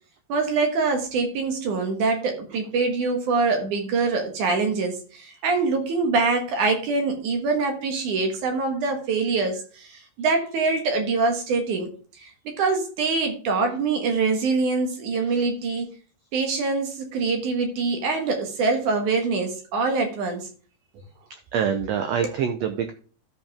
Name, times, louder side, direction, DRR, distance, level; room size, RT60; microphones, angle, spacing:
voice 1, 0.3-15.9 16.3-20.5 22.2-22.3, right 4 dB, 65° right, 5 dB, 2.8 m, -24 dB
voice 2, 21.3-22.9, right 7 dB, 85° right, 7 dB, 1.5 m, -26 dB
13.0 x 5.5 x 3.5 m, 0.40 s
omnidirectional pair, 4.0 m